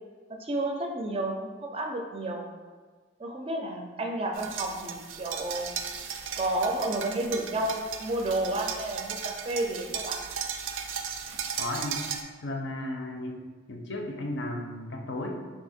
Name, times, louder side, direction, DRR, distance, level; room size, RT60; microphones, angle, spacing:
voice 1, 0.4-2.5 3.2-5.7 6.4-10.2, right 1 dB, 30° right, 2 dB, 0.4 m, -31 dB
sound 1, 4.3-12.2, right 7 dB, 90° right, 0.4 m, -36 dB
voice 2, 11.6-12.0 12.4-13.4 13.7-15.4, left 1 dB, 65° left, 3 dB, 0.5 m, -34 dB
3.6 x 2.8 x 4.2 m, 1.4 s
head